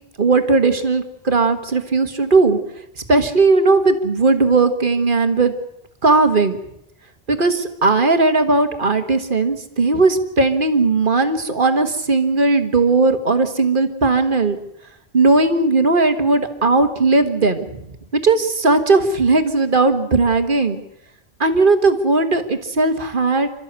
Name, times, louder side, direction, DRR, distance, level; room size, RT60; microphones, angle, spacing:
voice 1, 0.2-2.6 3.1-5.5 6.0-6.6 7.3-14.6 15.1-17.7 18.1-20.8 21.4-23.5, right 3 dB, 55° right, 8 dB, 1.8 m, -17 dB
28.5 x 13.5 x 8.2 m, 0.84 s
omnidirectional pair, 1.0 m